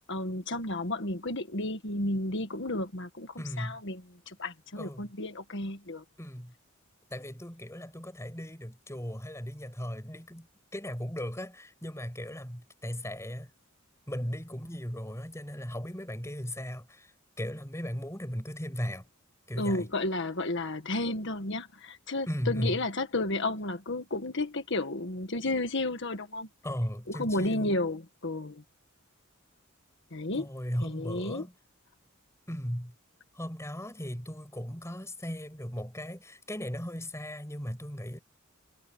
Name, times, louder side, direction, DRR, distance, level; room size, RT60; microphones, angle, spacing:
voice 1, 0.0-6.0 19.6-26.5 27.1-28.6 30.1-30.5 30.8-31.5, left 2 dB, 60° left, 1.7 m, -32 dB
voice 2, 3.4-3.8 4.8-5.1 6.2-6.5 7.1-13.5 14.1-17.1 17.4-19.0 19.5-19.9 22.3-22.8 26.6-27.7 30.3-31.5 32.5-32.9 33.3-38.2, equal, 15° left, 6.8 m, -37 dB
head